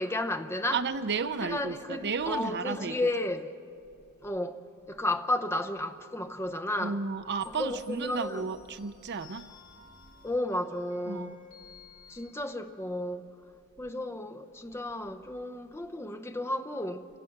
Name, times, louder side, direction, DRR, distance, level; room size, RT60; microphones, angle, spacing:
voice 1, 0.0-0.8 1.4-3.5 4.2-7.0 7.5-8.5 10.2-11.4 12.1-13.3 13.8-17.1, left 1 dB, 10° left, 0.7 m, -33 dB
voice 2, 0.7-3.1 6.8-9.5 11.1-11.3, right 5 dB, 50° right, 0.6 m, -33 dB
sound 1, 7.4-12.3, left 6 dB, 60° left, 2.4 m, -56 dB
28.0 x 16.5 x 5.9 m
head